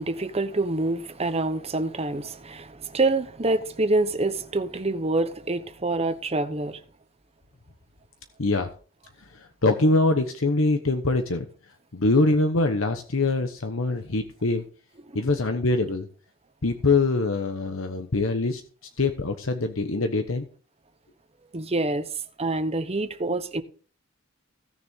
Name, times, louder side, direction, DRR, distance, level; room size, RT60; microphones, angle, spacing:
voice 1, 0.0-6.8 15.1-15.2 21.5-22.1 22.4-23.6, right 2 dB, 30° right, 0.9 m, -26 dB
voice 2, 9.3-11.4 11.9-14.6 15.1-16.1 16.6-18.6 19.0-20.4, left 2 dB, 80° left, 1.1 m, -23 dB
16.5 x 6.8 x 3.7 m
head